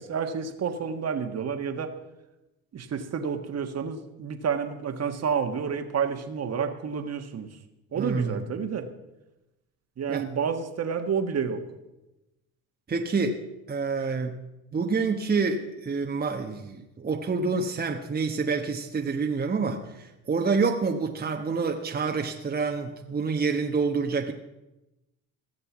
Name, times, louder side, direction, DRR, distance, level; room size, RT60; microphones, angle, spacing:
voice 1, 0.0-1.9 2.7-7.5 7.9-8.9 10.0-11.6, right 6 dB, 45° right, 6 dB, 1.6 m, -29 dB
voice 2, 7.9-8.4 10.1-10.2 12.9-13.4 13.7-14.3 14.7-24.3, right 4 dB, 25° right, 2 dB, 1.2 m, -27 dB
16.0 x 6.8 x 7.2 m, 0.97 s
supercardioid pair, 85°, 36 cm